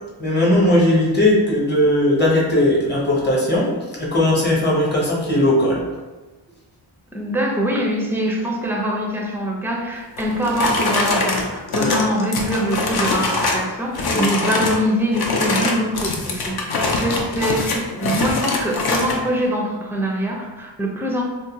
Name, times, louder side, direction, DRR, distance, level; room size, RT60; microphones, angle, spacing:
voice 1, 0.2-5.8 11.7-11.9 14.1-14.2, left 1 dB, 25° left, -5 dB, 0.9 m, -18 dB
voice 2, 7.1-21.2, equal, 5° right, -1 dB, 0.4 m, -23 dB
sound 1, 10.2-13.7 13.9-14.8 15.1-19.2, left 3 dB, 55° left, 0.5 m, -23 dB
2.5 x 2.2 x 3.9 m, 1.2 s
wide cardioid pair, 125°, 46 cm